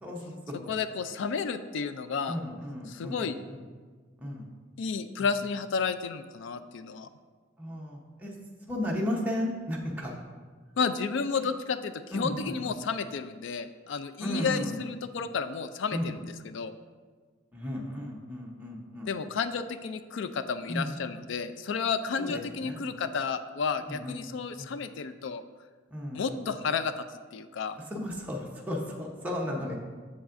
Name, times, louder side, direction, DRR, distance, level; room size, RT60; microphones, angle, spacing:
voice 1, 0.0-0.7 2.3-3.6 4.2-4.5 7.6-8.3 8.7-10.1 12.1-12.7 14.2-14.8 15.9-16.2 17.5-19.1 20.7-21.0 22.2-22.3 22.6-22.8 23.9-24.2 24.6-24.7 25.9-26.4 27.9-29.7, left 1 dB, 10° right, -2 dB, 0.8 m, -34 dB
voice 2, 0.7-2.4 2.9-3.4 4.8-7.1 10.8-16.2 16.4-16.8 19.1-25.4 26.1-26.9 27.3-27.8, left 5 dB, 65° left, 11 dB, 0.3 m, -32 dB
7.1 x 7.1 x 2.5 m, 1.5 s
head